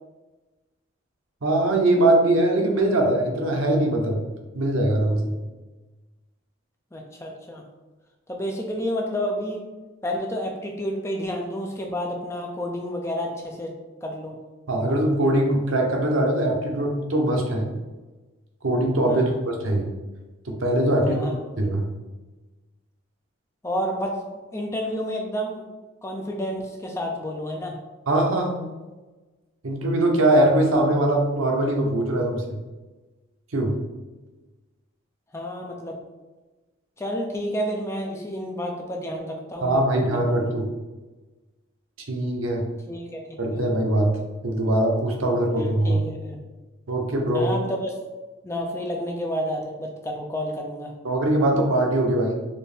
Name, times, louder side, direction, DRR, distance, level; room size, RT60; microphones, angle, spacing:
voice 1, 1.4-4.2 4.5-5.4 14.7-17.7 18.6-19.9 20.5-21.3 21.6-21.9 28.1-28.7 29.6-32.6 33.5-33.7 39.6-40.7 42.1-42.6 43.4-44.2 44.4-46.0 46.9-47.5 51.0-52.3, right 1 dB, 85° right, 2 dB, 0.7 m, -22 dB
voice 2, 6.9-7.6 8.3-9.7 10.0-13.7 14.0-14.4 19.1-19.4 21.0-21.5 23.6-24.2 24.5-25.6 26.0-27.8 35.3-36.0 37.0-40.5 42.9-43.6 45.6-46.4 47.3-47.9 48.4-50.9, equal, 15° left, 1 dB, 0.4 m, -30 dB
4.2 x 2.5 x 3.4 m, 1.2 s
head